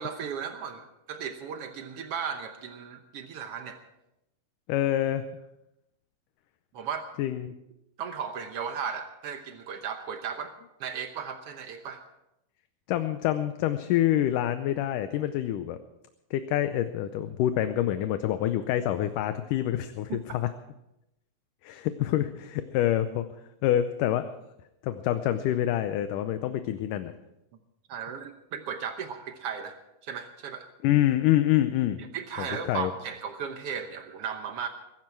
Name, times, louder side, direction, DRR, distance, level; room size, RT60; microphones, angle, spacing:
voice 1, 0.0-3.8 6.7-7.1 8.0-10.5 10.8-12.0 20.1-20.2 27.9-30.7 32.1-34.7, right 7 dB, 90° right, 6 dB, 1.3 m, -36 dB
voice 2, 4.7-5.2 7.2-7.5 12.9-15.8 16.3-20.5 21.6-23.3 23.6-24.3 24.8-27.1 30.8-32.0 32.4-32.9, left 12 dB, 75° left, 10 dB, 2.1 m, -26 dB
21.5 x 12.0 x 4.6 m, 0.88 s
omnidirectional pair, 4.1 m